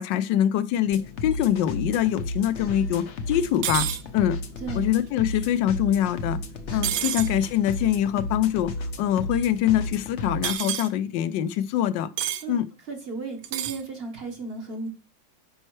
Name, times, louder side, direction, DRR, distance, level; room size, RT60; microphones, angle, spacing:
voice 1, 0.0-3.9 4.1-4.4 4.7-6.4 6.7-12.1 12.5-12.6, left 11 dB, 75° left, 15 dB, 1.2 m, -24 dB
sound 1, 0.9-10.5, left 1 dB, 60° left, 0.7 m, -33 dB
sound 2, 3.6-4.0 6.8-7.3 10.4-10.9 12.2-12.4 13.4-13.8, right 11 dB, 75° right, 1.2 m, -28 dB
voice 2, 4.6-4.9 6.7-7.1 12.4-12.6 12.9-14.9, right 4 dB, 40° right, 4 dB, 1.1 m, -35 dB
8.7 x 5.5 x 3.1 m, 0.34 s
omnidirectional pair, 2.1 m